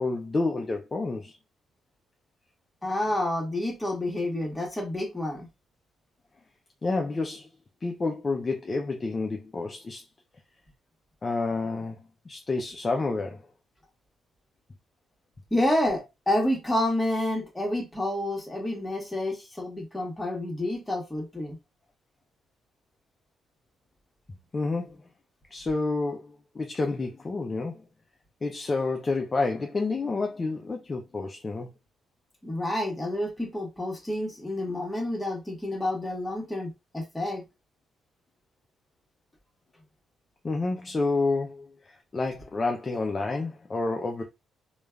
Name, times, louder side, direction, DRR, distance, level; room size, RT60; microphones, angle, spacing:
voice 1, 0.0-1.4 6.8-7.5 7.8-10.0 11.2-12.0 12.3-13.5 24.5-25.0 25.5-27.8 28.4-31.7 40.4-44.2, left 3 dB, 30° left, 0.4 m, -29 dB
voice 2, 2.8-5.5 15.5-21.6 32.4-37.4, left 1 dB, 10° left, 1.3 m, -29 dB
3.1 x 2.3 x 2.2 m
cardioid pair, 90°, 0 cm